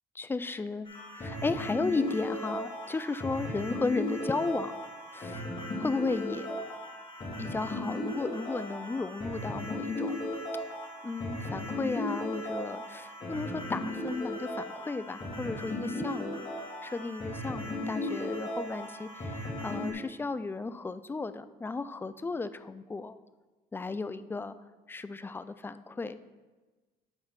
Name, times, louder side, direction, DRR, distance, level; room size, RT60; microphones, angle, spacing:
voice 1, 0.1-0.9 1.1-4.7 5.1-5.5 5.8-6.6 7.4-10.3 11.0-16.5 16.8-23.2 23.7-24.5 24.9-26.2, left 3 dB, 15° left, 13 dB, 0.3 m, -34 dB
sound 1, 0.9-19.9, left 1 dB, 30° left, 2.2 m, -36 dB
8.0 x 4.2 x 5.7 m, 1.2 s
cardioid pair, 110°, 17 cm